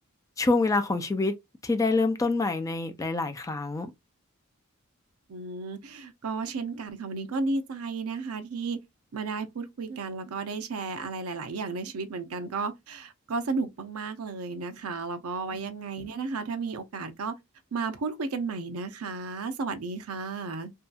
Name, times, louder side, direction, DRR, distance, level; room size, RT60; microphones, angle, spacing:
voice 1, 0.4-1.3 1.6-3.9, left 3 dB, 15° left, 0.3 m, -26 dB
voice 2, 5.3-8.8 9.1-17.4 17.7-20.7, right 4 dB, 80° right, 0.5 m, -33 dB
2.7 x 2.3 x 2.4 m
head